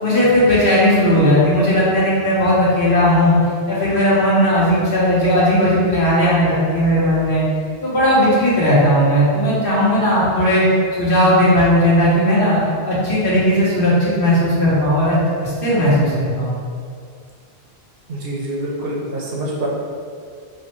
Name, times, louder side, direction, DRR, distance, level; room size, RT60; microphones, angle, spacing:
voice 1, 0.0-3.4 3.7-7.4 7.8-10.6 11.0-12.6 12.9-15.2 15.4-16.6, equal, 55° left, -8 dB, 1.1 m, -16 dB
voice 2, 18.1-19.7, right 1 dB, 65° right, -3 dB, 0.8 m, -26 dB
4.3 x 2.1 x 3.0 m, 2.2 s
omnidirectional pair, 1.1 m